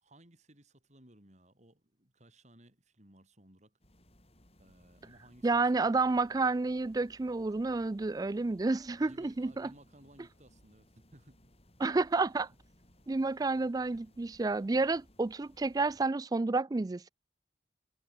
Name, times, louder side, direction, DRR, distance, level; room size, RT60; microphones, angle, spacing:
voice 1, 0.0-3.8 4.6-6.5 9.0-11.4 13.9-14.1, right 1 dB, 40° right, 4.9 m, -60 dB
sound 1, 3.8-16.1, left 1 dB, 35° left, 7.4 m, -63 dB
voice 2, 5.4-9.7 11.8-12.5 13.1-17.1, right 3 dB, 20° right, 0.3 m, -30 dB
head